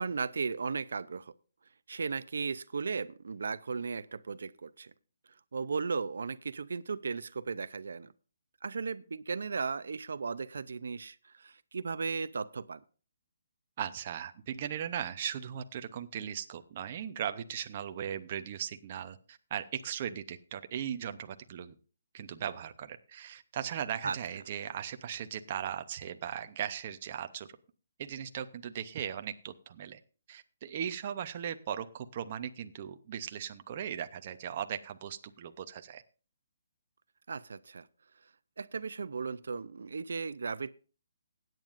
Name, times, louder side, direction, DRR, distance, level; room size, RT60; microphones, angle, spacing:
voice 1, 0.0-1.3 1.9-4.9 5.5-8.1 8.6-12.8 24.0-24.2 37.3-37.9 38.6-40.7, right 5 dB, 70° right, 15 dB, 0.5 m, -36 dB
voice 2, 13.8-21.8 22.1-27.5 28.0-30.0 30.3-36.0, right 9 dB, 30° right, 9 dB, 0.6 m, -38 dB
21.0 x 9.1 x 2.5 m, 0.37 s
hypercardioid pair, 175°, 0 cm